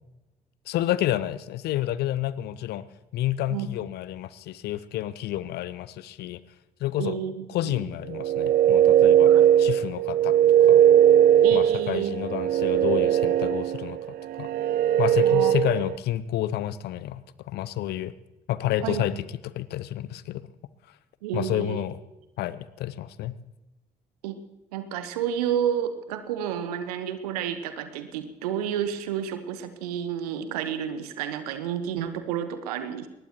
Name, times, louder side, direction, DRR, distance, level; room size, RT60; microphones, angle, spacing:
voice 1, 0.7-2.8 3.1-6.4 6.8-7.2 7.5-9.3 9.6-10.4 10.7-10.8 11.5-14.0 14.4-14.5 15.0-18.1 18.5-19.2 19.5-20.4 21.3-22.0 22.4-23.3, left 13 dB, 55° left, 17 dB, 0.7 m, -29 dB
voice 2, 7.0-7.9 9.2-9.4 11.4-12.1 15.2-15.5 18.8-19.0 21.2-21.8 24.2-24.4 24.7-33.1, right 9 dB, 70° right, 11 dB, 1.2 m, -30 dB
sound 1, 8.1-16.0, right 10 dB, 50° right, 0.5 m, -19 dB
22.5 x 20.0 x 3.0 m, 1.0 s
figure-of-eight pair, 45°, 20 cm